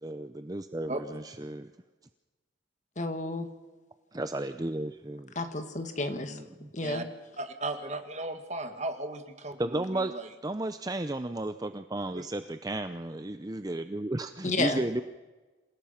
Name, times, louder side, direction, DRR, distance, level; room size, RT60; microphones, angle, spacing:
voice 1, 0.0-1.7 4.1-5.3 6.1-6.7 9.6-10.1 10.4-15.0, right 1 dB, 20° right, 10 dB, 0.6 m, -34 dB
voice 2, 3.0-3.5 5.4-6.4 6.7-7.0 14.4-14.8, left 2 dB, 40° left, 7 dB, 2.0 m, -31 dB
voice 3, 7.4-10.3 12.1-12.2, right 2 dB, 35° right, 7 dB, 2.0 m, -36 dB
27.5 x 17.0 x 5.9 m, 1.2 s
head